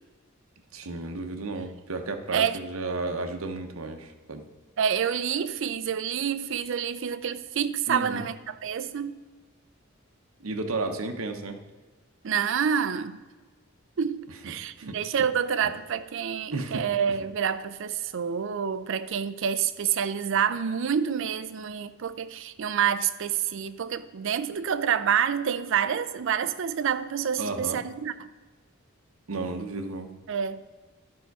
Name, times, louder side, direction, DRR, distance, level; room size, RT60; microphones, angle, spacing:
voice 1, 0.7-4.4 7.9-8.3 10.4-11.6 14.4-15.0 15.6-15.7 16.5-16.8 27.4-27.8 29.3-30.1, right 3 dB, 90° right, 6 dB, 0.9 m, -33 dB
voice 2, 4.8-9.2 12.2-13.2 14.0-28.3 30.3-30.7, right 8 dB, 65° right, 12 dB, 0.5 m, -28 dB
10.5 x 5.6 x 4.7 m, 1.3 s
head